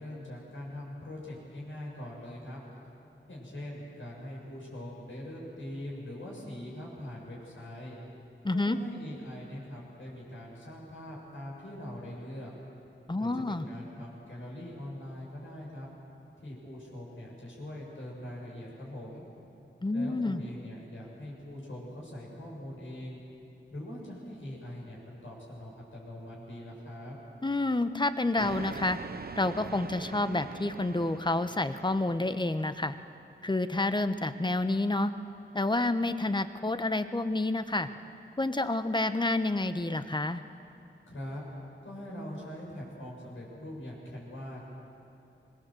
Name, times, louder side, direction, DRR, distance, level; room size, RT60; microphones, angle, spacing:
voice 1, 0.0-2.6 3.3-8.0 8.5-12.5 13.2-15.9 16.4-19.2 19.9-23.2 23.7-27.2 41.1-41.4 41.8-44.6, left 1 dB, 80° left, -4 dB, 7.2 m, -42 dB
voice 2, 8.4-8.8 13.1-13.7 19.8-20.4 27.4-29.0 29.4-32.9 33.4-35.1 35.5-37.9 38.4-40.4, left 2 dB, 25° left, 10 dB, 1.0 m, -29 dB
sound 1, 28.4-32.9, right 5 dB, 50° right, 0.6 m, -43 dB
25.0 x 19.5 x 7.7 m, 2.8 s
wide cardioid pair, 65°, 20 cm